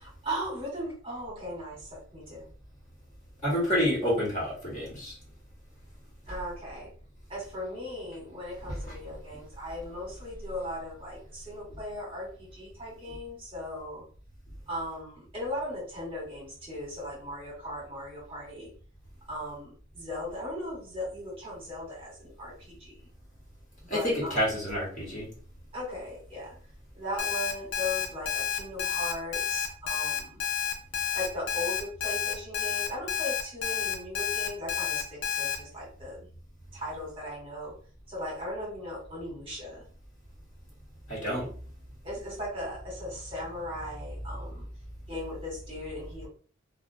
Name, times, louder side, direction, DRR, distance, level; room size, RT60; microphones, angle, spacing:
voice 1, 0.0-2.4 6.3-6.9 7.3-14.0 14.7-18.7 19.3-23.0 23.9-24.5 25.7-26.5 26.9-30.4 31.1-36.3 36.7-37.7 38.1-39.8 42.0-44.6 45.1-46.3, left 1 dB, 25° right, -4 dB, 1.0 m, -38 dB
voice 2, 3.4-5.1 23.9-25.3 41.1-41.4, equal, 40° left, -6 dB, 1.2 m, -28 dB
Alarm, 27.2-35.6, left 8 dB, 60° left, 0.5 m, -30 dB
2.4 x 2.1 x 2.6 m, 0.43 s
head